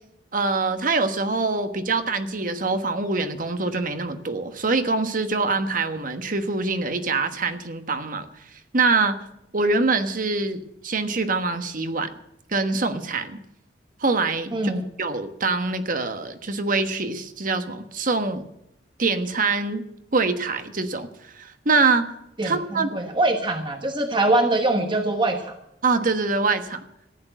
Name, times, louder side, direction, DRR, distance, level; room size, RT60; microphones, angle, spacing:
voice 1, 0.3-8.3 8.7-9.2 9.5-12.1 12.5-13.4 14.0-14.7 15.0-18.4 19.0-21.1 21.3-22.1 22.4-22.9 25.8-26.8, right 3 dB, 50° right, 8 dB, 1.3 m, -24 dB
voice 2, 14.5-14.8 22.4-25.5, right 2 dB, 25° right, 4 dB, 1.2 m, -23 dB
15.0 x 8.8 x 9.0 m, 0.81 s
head